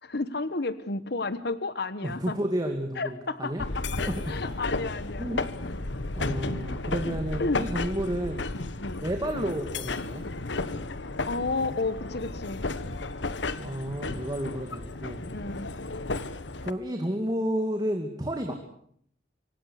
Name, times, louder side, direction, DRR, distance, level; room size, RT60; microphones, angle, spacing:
voice 1, 0.0-2.3 3.0-3.9 4.3-5.3 7.4-7.7 8.8-9.0 11.3-12.6 15.3-15.7 18.5-18.6, left 3 dB, 65° left, 13 dB, 1.3 m, -31 dB
voice 2, 2.0-3.6 4.0-4.5 5.2-5.4 6.1-8.5 9.0-10.2 13.6-15.2 16.6-18.5, equal, 20° right, 4 dB, 2.4 m, -31 dB
sound 1, 3.6-16.7, left 2 dB, 80° left, 1.4 m, -33 dB
26.5 x 25.0 x 6.6 m, 0.65 s
head